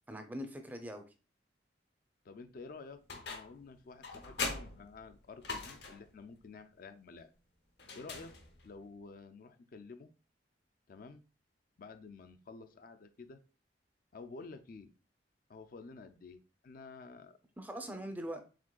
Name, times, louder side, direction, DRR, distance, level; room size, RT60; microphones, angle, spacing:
voice 1, 0.1-1.0 17.6-18.4, equal, 10° right, 0.5 m, -42 dB
voice 2, 2.2-7.3 7.9-8.3 8.6-10.1 10.9-11.2 11.8-13.4 14.1-14.9 15.5-17.4, left 4 dB, 50° left, 0.4 m, -51 dB
sound 1, 3.1-3.6 4.0-6.1 7.8-8.7, left 4 dB, 70° left, 0.8 m, -41 dB
5.0 x 3.6 x 2.3 m
head